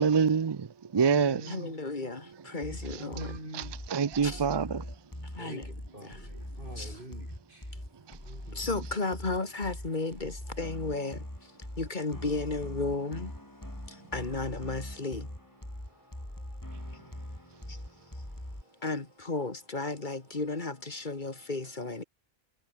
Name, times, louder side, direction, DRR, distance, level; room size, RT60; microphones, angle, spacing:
voice 1, 0.0-1.6 2.9-3.0 3.5-4.9 8.1-8.2, right 6 dB, 40° right, 0.4 m, -26 dB
voice 2, 1.0-1.8 2.7-3.8 5.4-7.7 8.2-8.6, right 1 dB, 55° right, 7.3 m, -45 dB
voice 3, 1.5-3.4 4.2-4.4 5.2-5.8 6.0-6.3 6.7-7.0 7.7-7.8 8.5-13.3 13.6-15.3 16.4-16.5 16.8-17.3 17.7-17.8 18.1-18.2 18.8-22.0, left 3 dB, 50° left, 2.1 m, -35 dB
sound 1, 2.6-18.6, left 1 dB, 20° left, 4.2 m, -42 dB
omnidirectional pair, 1.0 m